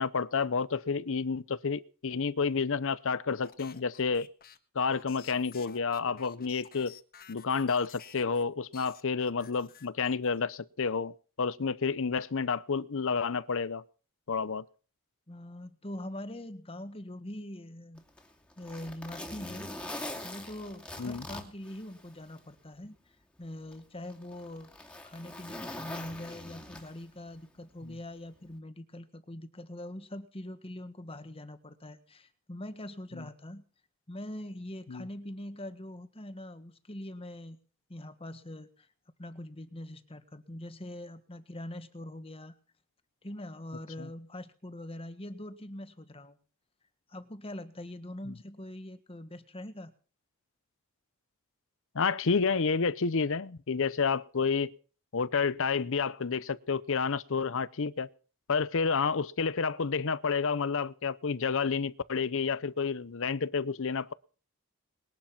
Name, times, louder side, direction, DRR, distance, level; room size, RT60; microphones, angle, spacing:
voice 1, 0.0-4.3 4.7-6.9 7.3-11.1 11.4-13.8 14.3-14.6 21.0-21.2 27.9-28.0 34.9-35.1 44.0-44.1 51.9-54.7 55.1-58.1 58.5-64.1, left 5 dB, 60° left, 0.7 m, -30 dB
sound 1, 3.4-8.4 8.7-10.4, left 8 dB, 40° left, 1.4 m, -53 dB
voice 2, 15.3-18.0 18.6-23.0 23.4-24.7 25.0-33.6 34.1-37.6 37.9-38.9 39.2-42.6 43.2-46.4 47.1-49.9, left 1 dB, 25° left, 1.6 m, -43 dB
Zipper (clothing), 18.0-22.4 22.8-22.9 23.7-27.2 28.3-28.5, left 1 dB, 5° left, 2.6 m, -43 dB
21.0 x 11.5 x 5.9 m
head